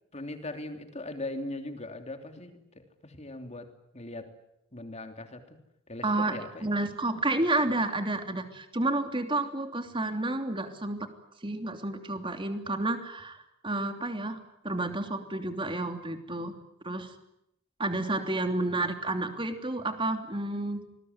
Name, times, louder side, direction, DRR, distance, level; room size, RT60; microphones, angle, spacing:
voice 1, 0.1-4.3 4.7-5.5 5.9-6.7, left 2 dB, 35° left, 6 dB, 3.2 m, -40 dB
voice 2, 6.0-11.1 11.4-14.4 14.6-16.5 16.8-17.1 17.8-20.8, right 2 dB, 25° right, 6 dB, 3.1 m, -30 dB
27.0 x 21.0 x 9.7 m, 0.82 s
head